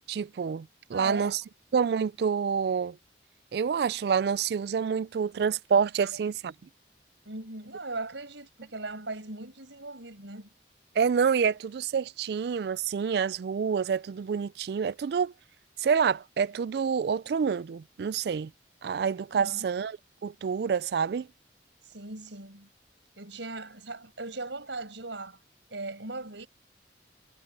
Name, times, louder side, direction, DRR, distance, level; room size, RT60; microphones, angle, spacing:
voice 1, 0.1-1.4 1.7-3.0 3.5-6.5 11.0-15.3 15.8-18.5 18.8-20.0 20.2-21.3, right 6 dB, 60° right, 0.3 m, -27 dB
voice 2, 0.9-1.4 6.0-6.1 7.2-10.5 19.3-19.7 21.9-22.7 23.2-25.4 25.7-26.5, right 2 dB, 90° right, 6.0 m, -38 dB
head